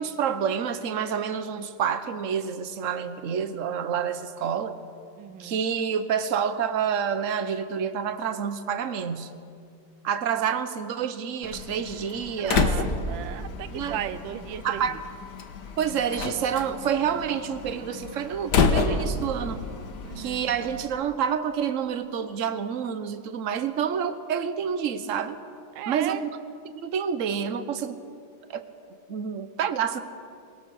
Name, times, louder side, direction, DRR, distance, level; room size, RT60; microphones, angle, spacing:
voice 1, 0.0-4.8 5.4-9.3 10.0-12.7 13.7-14.0 14.6-15.0 15.8-19.6 20.2-25.4 25.9-26.4 26.7-28.0 28.5-28.7 29.1-30.0, right 7 dB, 50° right, 10 dB, 1.1 m, -28 dB
voice 2, 5.2-5.6 12.4-15.0 20.0-20.5 25.7-26.2, right 11 dB, 75° right, 12 dB, 1.5 m, -36 dB
Slam, 11.4-20.9, left 4 dB, 60° left, 1.7 m, -29 dB
22.5 x 18.5 x 6.4 m, 2.4 s
omnidirectional pair, 2.1 m